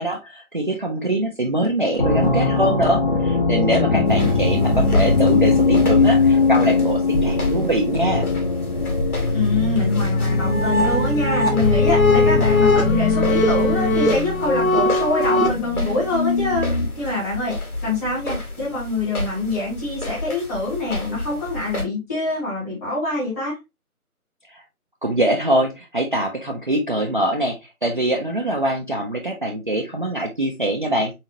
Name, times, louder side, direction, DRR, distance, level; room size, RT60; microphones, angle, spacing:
voice 1, 0.0-8.2 24.5-24.6 25.0-31.1, right 1 dB, 35° right, 1 dB, 0.5 m, -23 dB
sound 1, 2.0-17.0, left 3 dB, 35° left, 0.8 m, -21 dB
sound 2, 4.0-21.8, left 2 dB, 85° left, 2.3 m, -30 dB
voice 2, 9.3-16.7 17.0-17.6 17.8-23.6, left 2 dB, 10° left, -6 dB, 1.5 m, -25 dB
sound 3, 10.2-15.5, left 2 dB, 65° left, 1.3 m, -20 dB
4.2 x 4.1 x 2.7 m, 0.23 s
figure-of-eight pair, 155°, 44 cm